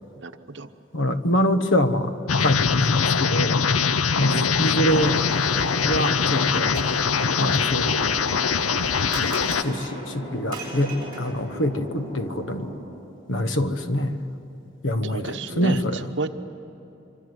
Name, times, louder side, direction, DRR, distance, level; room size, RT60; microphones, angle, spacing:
voice 1, 0.2-0.7 4.3-4.8 15.0-15.8 16.2-16.3, right 3 dB, 60° right, 8 dB, 1.0 m, -32 dB
voice 2, 0.9-2.1 2.4-3.6 4.1-5.2 5.8-6.7 7.4-8.1 9.6-12.7 13.3-14.3 14.8-16.3, equal, 75° left, 9 dB, 1.3 m, -25 dB
sound 1, 2.3-9.6, left 6 dB, 90° left, 0.6 m, -22 dB
Thunder, 4.6-12.7, equal, 20° left, 7.3 m, -37 dB
Domestic sounds home sounds, 5.0-11.5, right 2 dB, 20° right, 7.2 m, -38 dB
25.5 x 25.0 x 8.0 m, 3.0 s
head